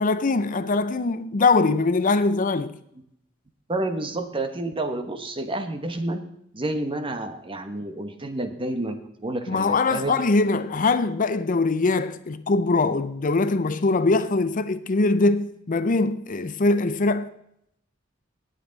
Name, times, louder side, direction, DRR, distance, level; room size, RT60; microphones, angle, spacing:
voice 1, 0.0-2.8 9.5-17.3, left 3 dB, 40° left, 0.6 m, -22 dB
voice 2, 3.7-6.2 6.5-10.2, right 2 dB, 25° right, 1.1 m, -29 dB
18.0 x 8.1 x 4.0 m
head